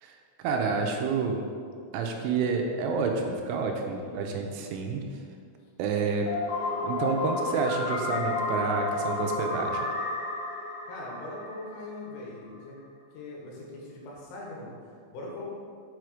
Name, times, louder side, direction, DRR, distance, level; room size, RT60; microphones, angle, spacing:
voice 1, 0.0-1.5 1.9-5.0 5.8-6.3 6.8-9.8, right 4 dB, 85° right, 2 dB, 3.1 m, -29 dB
sound 1, 6.3-12.1, left 2 dB, 55° left, 2.6 m, -31 dB
voice 2, 10.9-12.8 13.1-15.5, left 2 dB, 85° left, -3 dB, 4.2 m, -41 dB
7.5 x 6.3 x 4.8 m, 2.2 s
omnidirectional pair, 5.7 m